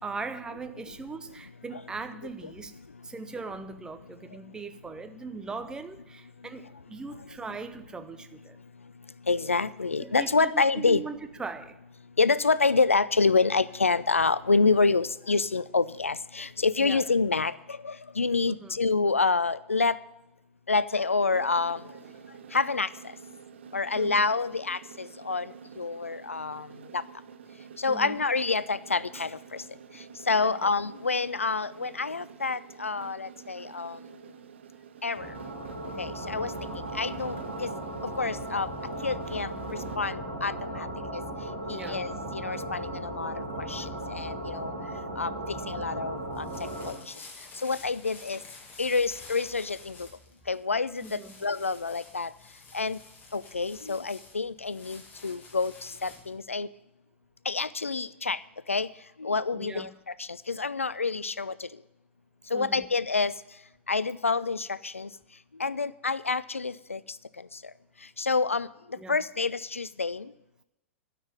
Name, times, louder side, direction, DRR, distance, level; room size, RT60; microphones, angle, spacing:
voice 1, 0.0-2.7 3.0-8.6 10.0-11.8 16.8-17.0 18.5-18.8 23.9-24.3 27.9-28.2 30.4-30.7 41.7-42.1 51.0-51.3 59.5-59.9 62.5-62.8 69.0-69.2, right 4 dB, 10° right, 9 dB, 0.7 m, -40 dB
voice 2, 9.3-11.0 12.2-20.0 20.7-21.8 22.5-22.9 23.7-25.5 25.8-26.7 26.9-27.0 27.8-29.6 30.3-34.0 35.0-35.3 36.0-37.7 38.2-38.7 39.0-40.9 41.1-41.2 41.7-44.7 45.2-45.3 45.7-46.5 46.8-46.9 47.6-48.4 48.8-50.1 50.5-52.3 52.7-53.0 53.3-56.7 57.5-58.4 58.7-58.9 59.2-59.9 60.2-61.7 62.5-63.3 63.9-65.1 65.6-67.0 68.2-68.7 69.1-70.3, left 4 dB, 80° left, 18 dB, 0.4 m, -27 dB
sound 1, 21.3-40.0, right 7 dB, 60° right, 0.8 m, -48 dB
sound 2, 35.1-46.9, right 1 dB, 85° right, 3.3 m, -36 dB
sound 3, 46.2-56.4, left 3 dB, 25° left, 2.1 m, -50 dB
12.5 x 5.9 x 9.4 m, 0.91 s
figure-of-eight pair, 100°, 7 cm